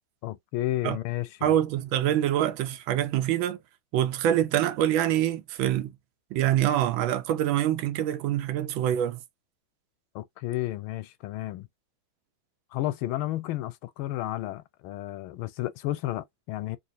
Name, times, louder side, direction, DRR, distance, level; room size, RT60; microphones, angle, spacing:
voice 1, 0.2-1.5 10.1-11.7 12.7-16.8, left 15 dB, 85° left, 1.4 m, -32 dB
voice 2, 1.4-3.6 3.9-5.9 6.3-9.2, right 11 dB, 80° right, 1.4 m, -25 dB
4.0 x 2.3 x 2.5 m
omnidirectional pair, 2.2 m